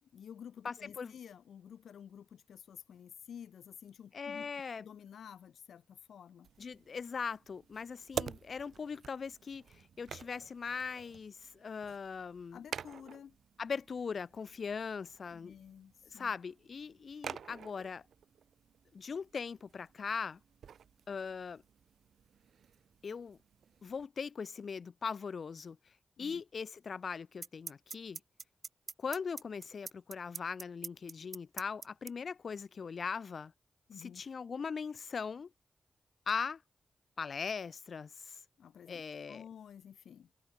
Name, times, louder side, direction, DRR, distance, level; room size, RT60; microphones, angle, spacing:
voice 1, 0.0-4.5 4.8-6.5 12.5-13.4 15.3-16.3 26.2-26.4 33.9-34.2 38.6-40.3, left 8 dB, 85° left, 1.6 m, -51 dB
voice 2, 0.6-1.1 4.1-4.9 6.6-12.6 13.6-15.5 16.1-18.1 18.9-20.4 21.1-21.6 23.0-23.4 23.8-25.9 26.2-28.2 29.0-33.5 34.0-35.5 36.3-36.6 37.2-38.4 38.9-39.5, left 5 dB, 65° left, 0.3 m, -40 dB
sound 1, 6.4-24.1, right 7 dB, 80° right, 0.3 m, -49 dB
sound 2, 26.3-26.4 27.4-32.1, right 5 dB, 60° right, 1.0 m, -42 dB
cardioid pair, 50°, 0 cm